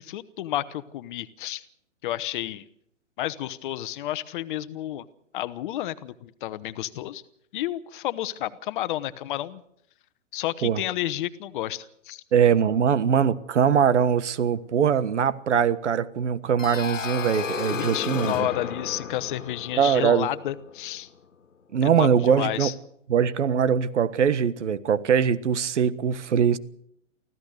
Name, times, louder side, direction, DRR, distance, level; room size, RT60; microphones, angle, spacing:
voice 1, 0.0-1.6 2.0-2.6 3.2-5.0 5.3-7.2 7.5-9.6 10.3-12.2 17.7-21.1 21.8-22.7, left 14 dB, 40° left, 1.1 m, -31 dB
voice 2, 12.3-18.5 19.8-20.3 21.7-22.7 23.1-26.6, right 7 dB, 65° right, 1.5 m, -22 dB
sound 1, 16.6-21.2, left 6 dB, 75° left, 1.7 m, -34 dB
25.0 x 16.0 x 6.6 m
hypercardioid pair, 125°, 38 cm